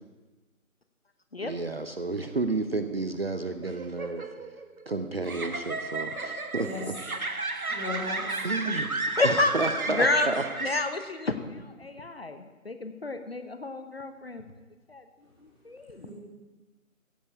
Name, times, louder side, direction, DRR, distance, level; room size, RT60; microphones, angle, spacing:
voice 1, 1.4-4.2 4.9-6.9 8.4-8.9 9.2-10.4, right 3 dB, 45° right, 8 dB, 0.8 m, -31 dB
sound 1, 3.6-11.2, right 3 dB, 90° right, 1.2 m, -33 dB
voice 2, 7.7-8.4 16.0-16.1, left 3 dB, 5° right, -8 dB, 2.1 m, -36 dB
voice 3, 9.2-9.5 10.0-10.3 10.6-14.4 14.9-15.0 15.6-16.1, left 2 dB, 45° left, 8 dB, 0.9 m, -29 dB
15.5 x 5.4 x 8.4 m, 1.2 s
figure-of-eight pair, 160°, 42 cm